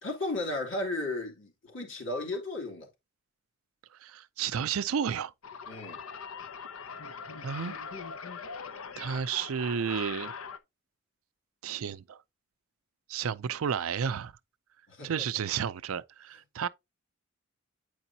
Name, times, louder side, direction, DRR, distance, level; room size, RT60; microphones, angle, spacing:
voice 1, 0.0-2.9 5.7-6.0 14.9-15.2, left 2 dB, 60° left, 2.7 m, -34 dB
voice 2, 4.0-5.3 7.4-8.0 9.0-10.3 11.6-12.2 13.1-14.3 15.0-16.7, right 7 dB, 85° right, 0.5 m, -32 dB
sound 1, 5.4-10.6, left 6 dB, 90° left, 0.8 m, -41 dB
8.9 x 4.8 x 2.7 m
head